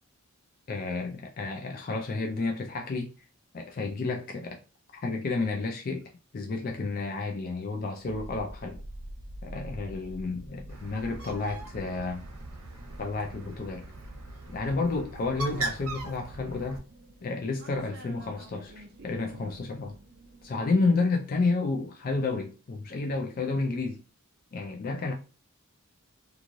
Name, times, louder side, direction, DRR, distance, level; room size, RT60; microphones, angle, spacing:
voice 1, 0.7-3.1 3.5-4.6 5.0-6.0 6.3-8.8 9.4-12.2 13.0-13.9 14.5-16.8 17.2-20.0 20.4-24.0 24.5-25.1, left 3 dB, 40° left, 0.3 m, -31 dB
sound 1, 7.9-20.7, right 1 dB, 50° right, 0.4 m, -47 dB
Bird, 10.7-16.8, right 2 dB, 80° right, 0.8 m, -40 dB
3.0 x 2.5 x 2.5 m
head